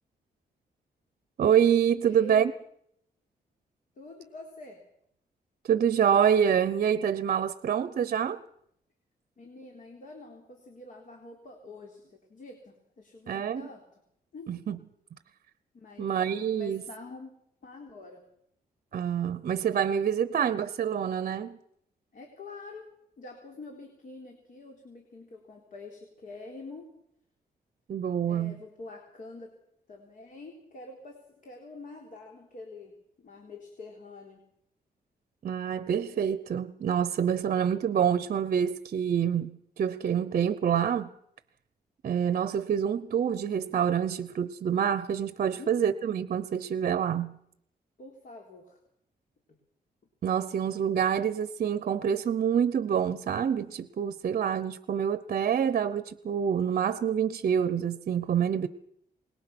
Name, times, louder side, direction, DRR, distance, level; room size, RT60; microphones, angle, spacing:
voice 1, 1.4-2.5 5.7-8.4 13.3-13.7 14.5-14.8 16.0-16.9 18.9-21.6 27.9-28.5 35.4-41.1 42.0-47.4 50.2-58.7, right 8 dB, 55° right, 0.8 m, -27 dB
voice 2, 2.1-2.4 4.0-4.8 9.4-13.8 14.3-14.5 15.7-17.3 17.6-18.2 22.1-22.9 23.2-26.9 28.3-29.5 29.9-34.4 45.5-46.0 48.0-48.8, left 2 dB, 55° left, 3.9 m, -46 dB
25.5 x 21.0 x 6.1 m
wide cardioid pair, 160°, 16 cm